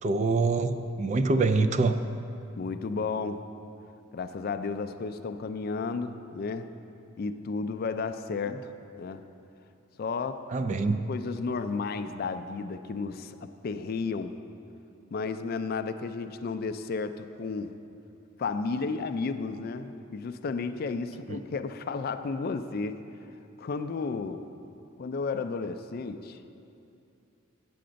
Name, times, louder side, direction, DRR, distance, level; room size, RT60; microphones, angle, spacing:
voice 1, 0.0-2.0 10.5-11.1 21.3-21.4, right 3 dB, 35° right, 10 dB, 0.3 m, -25 dB
voice 2, 2.6-3.5 4.1-6.7 7.2-9.3 10.0-10.5 11.1-14.4 15.1-17.8 18.4-23.0 23.6-24.5 25.0-26.4, left 4 dB, 50° left, 9 dB, 0.3 m, -33 dB
8.6 x 7.7 x 5.1 m, 2.8 s
head